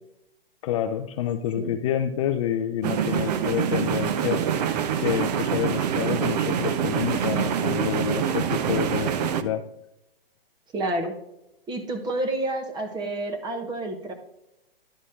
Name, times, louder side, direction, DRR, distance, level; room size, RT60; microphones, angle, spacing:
voice 1, 0.6-4.7 5.0-9.7, left 10 dB, 35° left, 8 dB, 0.5 m, -28 dB
sound 1, 2.8-9.4, right 9 dB, 45° right, 0.7 m, -25 dB
voice 2, 10.7-11.2 11.7-14.1, right 1 dB, 15° right, 5 dB, 1.2 m, -29 dB
11.5 x 4.1 x 5.1 m, 0.86 s
hypercardioid pair, 135°, 29 cm